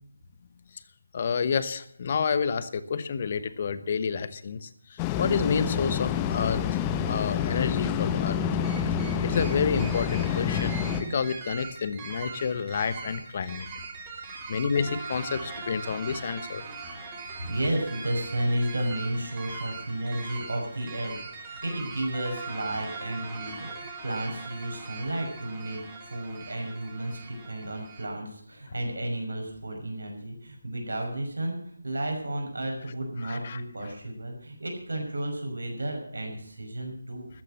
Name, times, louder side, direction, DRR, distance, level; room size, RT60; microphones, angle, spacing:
voice 1, 1.1-6.8 7.1-8.4 9.2-13.7 14.5-16.6 33.2-33.6, left 6 dB, 35° left, 14 dB, 1.1 m, -29 dB
sound 1, 5.0-11.0, left 8 dB, 15° left, 1.3 m, -28 dB
sound 2, 8.6-28.1, right 4 dB, 15° right, 3.0 m, -41 dB
voice 2, 16.6-16.9 17.4-31.6 31.8-37.3, right 1 dB, 70° right, 2 dB, 5.7 m, -32 dB
13.5 x 9.9 x 7.6 m, 0.67 s
figure-of-eight pair, 155°, 0 cm